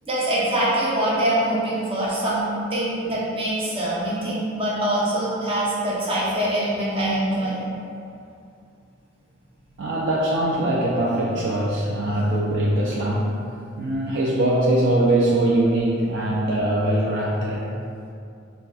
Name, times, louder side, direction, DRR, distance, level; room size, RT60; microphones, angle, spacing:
voice 1, 0.1-7.6, right 1 dB, 30° right, -7 dB, 0.7 m, -24 dB
voice 2, 9.8-13.3 13.8-17.7, right 1 dB, 60° right, -4 dB, 0.3 m, -22 dB
3.9 x 2.2 x 2.3 m, 2.5 s
head